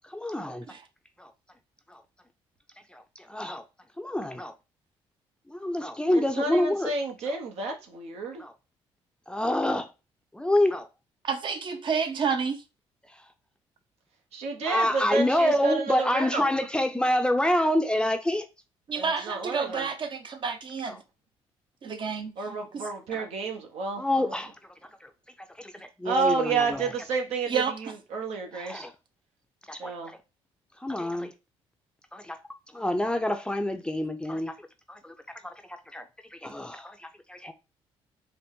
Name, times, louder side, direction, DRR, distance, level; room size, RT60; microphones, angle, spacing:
voice 1, 0.1-0.7 1.2-1.3 1.9-2.0 2.9-3.0 3.3-3.6 4.0-4.5 5.5-6.9 8.4-8.5 9.3-9.9 10.4-10.8 14.6-18.5 19.7-19.8 20.9-21.0 23.1-23.2 24.0-24.5 25.6-26.9 28.5-28.9 29.7-29.9 30.8-31.3 32.1-32.4 32.7-34.5 34.9-35.1 35.4-35.5 35.9-36.0 36.4-37.0 37.3-37.5, left 1 dB, 10° left, 0.5 m, -27 dB
voice 2, 6.1-8.4 14.3-16.6 18.9-19.9 22.4-24.4 26.0-28.9 29.8-30.1, right 4 dB, 75° right, 0.9 m, -30 dB
voice 3, 11.3-12.6 18.9-20.9 21.8-22.8 27.5-27.7, right 6 dB, 50° right, 0.7 m, -29 dB
4.1 x 2.1 x 3.6 m
supercardioid pair, 75°, 11 cm